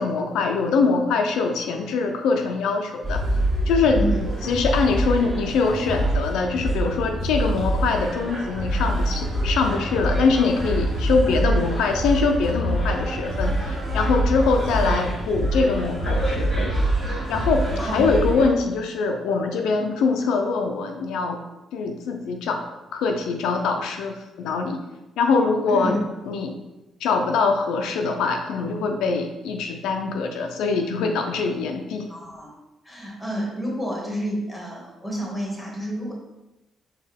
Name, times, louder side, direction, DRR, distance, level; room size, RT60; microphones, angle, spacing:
voice 1, 0.0-3.2 3.7-4.0 4.4-16.8 17.3-21.4 21.7-24.8 25.2-26.0 26.2-26.5 27.0-32.1, left 4 dB, 85° left, 4 dB, 0.4 m, -23 dB
sound 1, 3.0-18.5, right 1 dB, 25° right, 1.4 m, -25 dB
voice 2, 17.8-18.2 25.7-26.0 32.1-32.6 32.8-36.1, equal, 5° left, -2 dB, 1.2 m, -29 dB
4.2 x 2.2 x 3.4 m, 0.99 s
cardioid pair, 90°, 0 cm